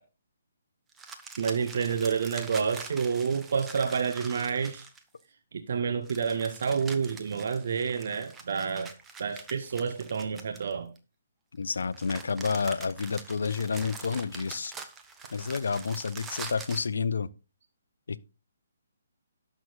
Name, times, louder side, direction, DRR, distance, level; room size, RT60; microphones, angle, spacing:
sound 1, 0.9-5.2 6.0-11.0 11.7-16.9, right 4 dB, 10° right, 0.9 m, -44 dB
voice 1, 1.4-4.8 5.5-8.9 9.2-10.9, right 6 dB, 50° right, 0.9 m, -29 dB
voice 2, 11.6-14.7 15.3-17.3 18.1-18.2, left 5 dB, 60° left, 0.6 m, -30 dB
18.0 x 6.3 x 2.4 m
figure-of-eight pair, 135°, 0 cm